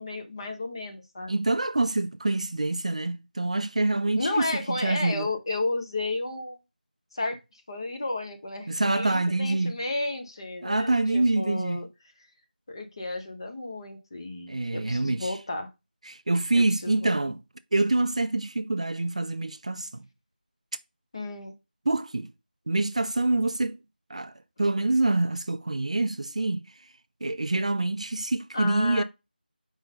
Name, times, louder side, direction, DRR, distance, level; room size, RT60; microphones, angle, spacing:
voice 1, 0.0-1.3 4.2-6.6 7.1-11.9 12.7-15.7 16.5-17.3 21.1-21.5 28.5-29.0, left 2 dB, 30° left, 0.9 m, -33 dB
voice 2, 1.3-5.3 8.7-9.8 10.6-11.9 14.5-15.3 16.1-17.4 17.7-20.0 21.9-22.3 22.7-23.8 24.1-26.7 27.2-29.0, right 2 dB, 40° right, 0.4 m, -26 dB
4.8 x 3.7 x 5.4 m
figure-of-eight pair, 170°, 5 cm